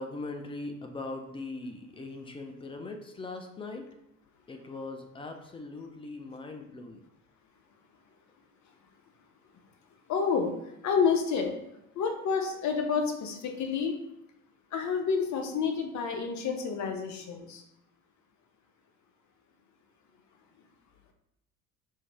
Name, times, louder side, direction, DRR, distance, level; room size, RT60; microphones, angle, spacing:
voice 1, 0.0-3.9 4.5-7.0, left 2 dB, 15° left, 4 dB, 0.3 m, -40 dB
voice 2, 10.1-11.6 11.9-14.0 14.7-17.6, left 6 dB, 40° left, 4 dB, 0.7 m, -29 dB
4.5 x 2.7 x 3.4 m, 0.82 s
figure-of-eight pair, 55°, 46 cm